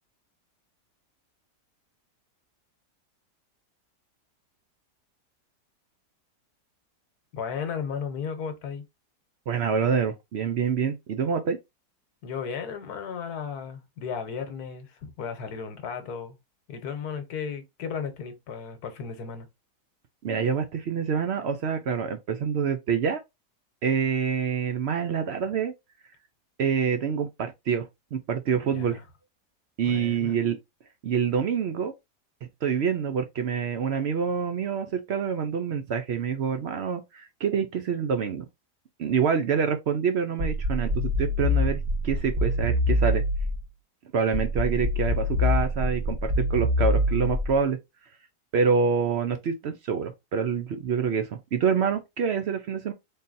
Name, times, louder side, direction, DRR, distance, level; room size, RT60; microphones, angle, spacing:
voice 1, 7.3-8.9 12.2-16.4 16.7-19.5 28.7-29.0 29.8-30.4, left 6 dB, 75° left, 1.4 m, -35 dB
voice 2, 9.5-11.6 20.2-23.2 23.8-25.7 26.6-29.0 29.8-30.6 31.0-31.9 32.6-38.4 39.0-43.2 44.1-47.8 48.5-52.9, right 6 dB, 70° right, 0.6 m, -26 dB
sound 1, 40.4-43.7 44.3-47.7, left 1 dB, 45° right, 0.9 m, -25 dB
4.0 x 3.8 x 2.5 m
omnidirectional pair, 1.7 m